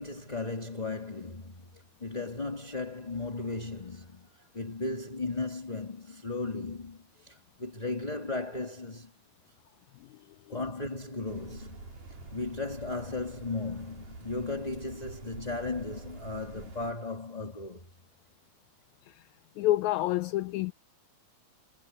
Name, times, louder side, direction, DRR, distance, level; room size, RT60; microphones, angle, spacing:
voice 1, 0.0-9.1 10.5-11.9 12.3-17.9, left 3 dB, 15° left, 2.6 m, -36 dB
sound 1, 11.3-16.9, right 3 dB, 80° right, 7.5 m, -47 dB
voice 2, 19.6-20.7, left 15 dB, 80° left, 1.8 m, -29 dB
omnidirectional pair, 3.6 m